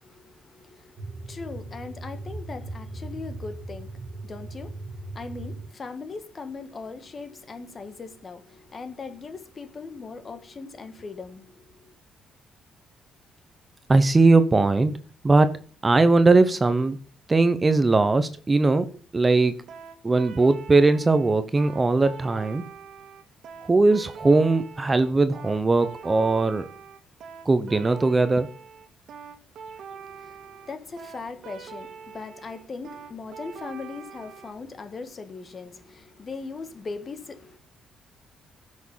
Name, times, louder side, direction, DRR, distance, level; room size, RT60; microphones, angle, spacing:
voice 1, 0.0-11.9 29.9-37.6, left 4 dB, 30° left, 1.4 m, -39 dB
sound 1, 1.0-5.7, right 2 dB, 75° right, 2.1 m, -38 dB
voice 2, 13.9-15.0 15.2-15.6 15.8-17.0 17.3-18.9 19.1-19.5 20.0-22.6 23.6-26.7 27.5-28.5, right 3 dB, 20° right, 0.8 m, -20 dB
sound 2, 19.7-34.5, right 6 dB, 60° right, 1.8 m, -43 dB
16.0 x 6.4 x 5.6 m
cardioid pair, 140°, 0 cm